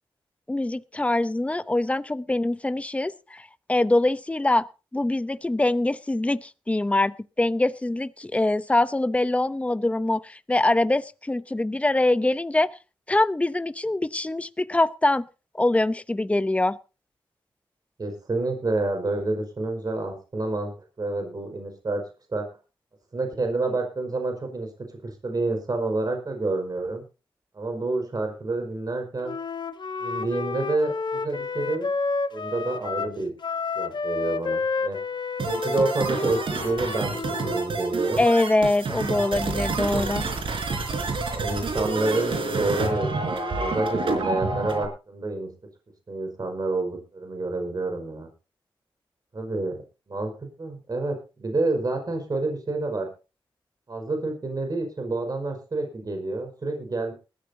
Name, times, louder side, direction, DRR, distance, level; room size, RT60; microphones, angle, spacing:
voice 1, 0.5-4.6 4.9-12.7 13.1-15.3 15.5-16.8 38.2-40.3, left 2 dB, 15° left, 14 dB, 0.7 m, -24 dB
voice 2, 18.0-22.0 22.3-22.4 23.1-24.7 25.0-27.0 27.5-29.3 30.0-31.9 32.3-33.3 33.7-35.0 35.5-38.2 39.1-39.3 41.3-45.5 46.1-48.3 49.3-49.7 50.1-50.3 50.6-53.1 53.9-57.1, right 2 dB, 45° right, 4 dB, 5.0 m, -28 dB
Wind instrument woodwind instrument, 29.2-37.7, left 4 dB, 55° left, 1.1 m, -30 dB
sound 1, 35.4-44.9, right 3 dB, 70° right, 4.4 m, -28 dB
20.5 x 14.0 x 2.8 m, 0.31 s
cardioid pair, 80°, 9 cm